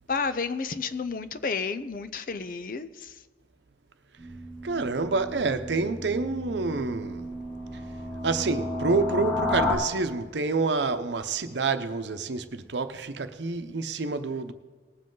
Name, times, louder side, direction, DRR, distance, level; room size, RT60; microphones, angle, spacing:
voice 1, 0.1-3.1, left 5 dB, 50° left, 0.5 m, -31 dB
sound 1, 4.2-9.8, left 2 dB, 10° left, 1.6 m, -32 dB
voice 2, 4.6-7.3 8.2-14.5, right 3 dB, 90° right, 0.8 m, -28 dB
19.5 x 7.6 x 3.9 m
head